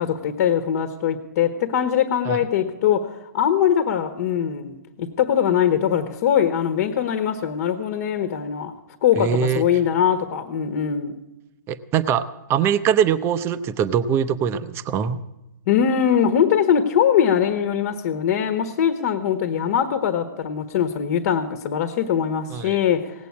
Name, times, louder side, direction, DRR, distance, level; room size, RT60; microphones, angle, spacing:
voice 1, 0.0-8.7 9.0-11.1 15.7-23.3, left 8 dB, 50° left, 7 dB, 1.3 m, -22 dB
voice 2, 9.2-9.6 11.7-15.2 22.5-22.8, right 8 dB, 25° right, 11 dB, 0.7 m, -22 dB
18.0 x 8.2 x 8.6 m, 0.95 s
hypercardioid pair, 140°, 10 cm